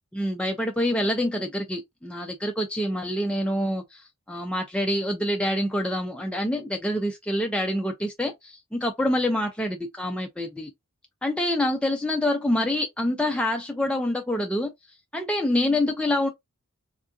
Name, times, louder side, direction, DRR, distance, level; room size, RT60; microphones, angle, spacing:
voice 1, 0.1-10.7 11.2-14.7 15.1-16.3, left 1 dB, 5° left, 0.3 m, -26 dB
3.5 x 2.5 x 2.3 m
head